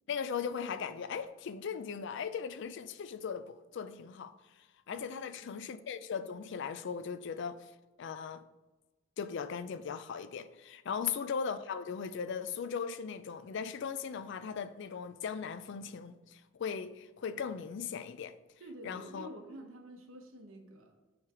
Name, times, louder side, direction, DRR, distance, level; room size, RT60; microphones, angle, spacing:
voice 1, 0.1-7.7 8.0-8.4 9.2-18.3 18.8-19.3, left 6 dB, 60° left, 0.4 m, -38 dB
voice 2, 4.9-5.6 10.9-11.0 18.6-21.0, right 1 dB, 85° right, 1.0 m, -49 dB
7.1 x 3.3 x 4.9 m
head